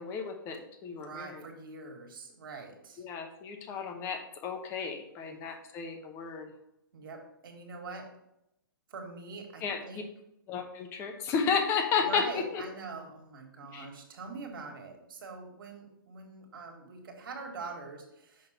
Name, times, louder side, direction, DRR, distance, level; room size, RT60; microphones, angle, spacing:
voice 1, 0.0-1.4 3.0-6.5 9.6-9.8 10.5-12.6 13.7-13.9, left 6 dB, 20° left, 6 dB, 0.9 m, -33 dB
voice 2, 0.9-3.0 5.2-5.4 6.9-8.1 8.9-10.1 12.0-18.5, right 4 dB, 75° right, 2 dB, 1.9 m, -44 dB
6.3 x 5.4 x 4.3 m, 0.82 s
hypercardioid pair, 155°, 12 cm